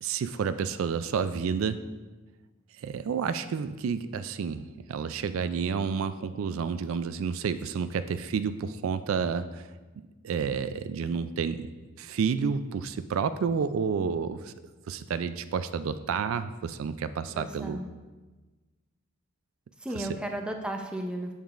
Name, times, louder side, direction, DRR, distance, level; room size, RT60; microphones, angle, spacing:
voice 1, 0.0-1.8 2.8-9.7 10.2-11.7 12.0-14.5 14.9-17.8 19.9-20.1, right 6 dB, 75° right, 12 dB, 0.3 m, -30 dB
voice 2, 17.3-17.9 19.8-21.3, right 1 dB, 5° right, 2 dB, 0.5 m, -34 dB
8.6 x 7.2 x 2.5 m, 1.2 s
head